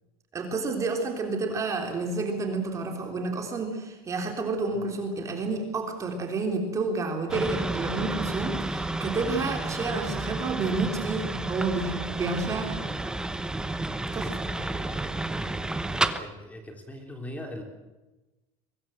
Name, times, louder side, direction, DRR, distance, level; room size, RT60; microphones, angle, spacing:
voice 1, 0.3-12.8 14.1-14.5, right 3 dB, 25° right, 4 dB, 3.4 m, -30 dB
sound 1, 7.3-16.2, right 2 dB, 5° right, 1.0 m, -31 dB
voice 2, 12.8-13.2 14.6-17.6, left 1 dB, 10° left, 4 dB, 3.9 m, -42 dB
24.0 x 21.0 x 7.7 m, 1.1 s
cardioid pair, 150°, 13 cm